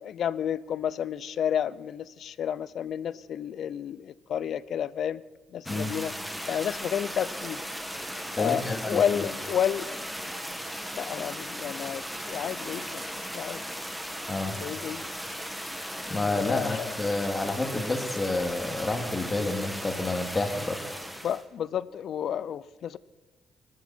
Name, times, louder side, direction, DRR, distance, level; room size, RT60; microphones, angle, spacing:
voice 1, 0.0-5.2 5.5-6.1 6.5-7.6 8.4-9.9 11.0-13.0 13.3-13.6 14.6-15.0 16.3-16.9 21.2-23.0, left 9 dB, 65° left, 19 dB, 0.5 m, -31 dB
sound 1, 5.7-21.4, equal, ahead, 2.0 m, -37 dB
voice 2, 8.3-9.3 14.3-14.5 16.1-20.8, left 2 dB, 25° left, 4 dB, 2.5 m, -29 dB
24.0 x 13.5 x 4.4 m, 1.2 s
cardioid pair, 90°, 0 cm